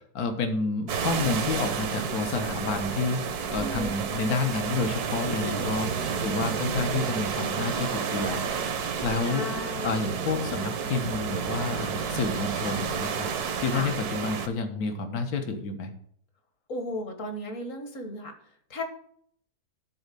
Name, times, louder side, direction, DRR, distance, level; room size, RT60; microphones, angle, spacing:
voice 1, 0.1-3.2 3.5-5.9 6.2-8.4 8.8-9.5 9.8-13.3 13.6-15.9, left 4 dB, 70° left, 6 dB, 1.7 m, -29 dB
sound 1, 0.9-14.5, right 6 dB, 80° right, 1.5 m, -31 dB
voice 2, 3.6-4.0 5.3-5.8 9.2-10.1 13.7-13.9 16.7-18.3 18.7-18.8, left 1 dB, 55° left, 5 dB, 1.9 m, -35 dB
12.0 x 4.1 x 6.8 m, 0.63 s
omnidirectional pair, 1.6 m